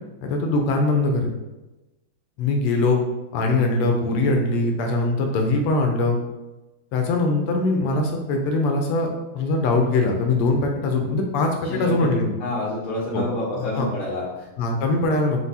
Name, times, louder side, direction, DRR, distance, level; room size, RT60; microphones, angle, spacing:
voice 1, 0.2-1.3 2.4-3.0 3.3-6.2 6.9-9.1 9.3-12.4 13.1-13.2 13.5-13.9 14.6-15.4, left 2 dB, 90° left, 2 dB, 1.5 m, -22 dB
voice 2, 11.7-12.1 12.4-14.5, left 1 dB, 75° left, -9 dB, 1.8 m, -28 dB
4.7 x 2.2 x 4.0 m, 1.1 s
omnidirectional pair, 2.4 m